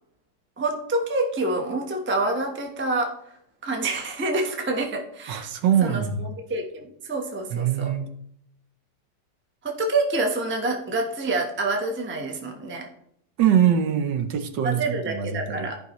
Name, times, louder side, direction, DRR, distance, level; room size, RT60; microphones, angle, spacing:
voice 1, 0.6-3.1 3.6-5.5 5.8-7.9 9.6-12.9 14.6-15.8, right 2 dB, 10° right, 3 dB, 0.6 m, -27 dB
voice 2, 5.3-6.3 7.5-8.1 13.4-15.7, right 9 dB, 75° right, 7 dB, 1.4 m, -23 dB
14.0 x 5.4 x 3.1 m, 0.72 s
omnidirectional pair, 2.0 m